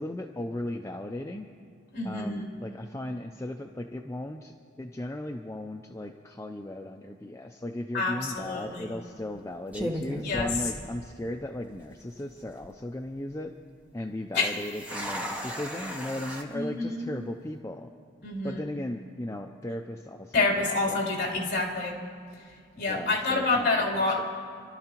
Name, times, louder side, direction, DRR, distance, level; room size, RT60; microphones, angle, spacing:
voice 1, 0.0-1.5 2.0-13.5 13.9-17.9 18.4-21.0 22.9-24.2, left 1 dB, 15° left, 3 dB, 0.4 m, -36 dB
voice 2, 1.9-2.5 7.9-9.0 10.2-10.5 14.3-14.5 16.5-17.1 18.2-18.6 20.3-22.0 22.8-24.2, left 3 dB, 55° left, -5 dB, 3.4 m, -28 dB
sound 1, 8.2-8.5 9.2-9.4 9.7-11.3 11.6-11.7 12.3-12.7 14.4-16.4, equal, 5° right, 1.2 m, -36 dB
30.0 x 12.5 x 3.0 m, 2.4 s
head